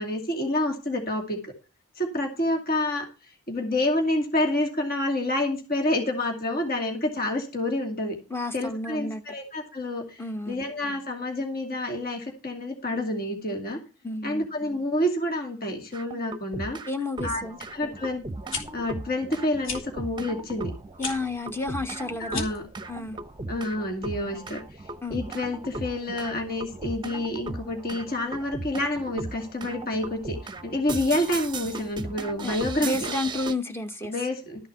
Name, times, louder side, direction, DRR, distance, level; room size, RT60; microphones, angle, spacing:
voice 1, 0.0-1.5 2.0-3.1 3.5-8.2 8.5-13.8 14.2-16.8 17.2-17.4 17.7-18.2 18.7-20.7 22.2-22.6 23.5-24.6 25.1-32.9 34.0-34.7, left 1 dB, 45° left, 2.5 m, -28 dB
voice 2, 8.3-9.2 10.2-10.6 14.0-14.4 16.9-17.6 21.0-22.5 22.9-23.2 25.0-25.2 32.4-34.1, left 2 dB, 10° left, 1.0 m, -31 dB
sound 1, 15.9-16.9 17.2-33.5, right 2 dB, 20° right, 0.8 m, -37 dB
sound 2, 18.3-18.6 19.6-19.8 21.0-21.2 22.2-22.6, left 4 dB, 65° left, 3.4 m, -33 dB
13.5 x 6.5 x 5.7 m
head